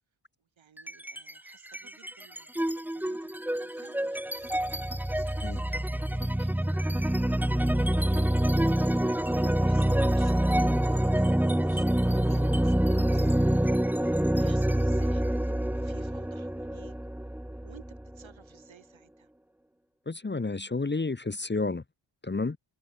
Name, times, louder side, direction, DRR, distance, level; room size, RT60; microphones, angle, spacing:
voice 1, 0.4-9.2 9.6-17.0 17.6-19.3, right 7 dB, 75° right, 6.6 m, -57 dB
sound 1, 0.8-1.3 1.7-18.3, right 1 dB, 5° right, 0.9 m, -26 dB
voice 2, 20.1-21.8 22.2-22.6, left 3 dB, 25° left, 1.2 m, -30 dB
cardioid pair, 70°, 47 cm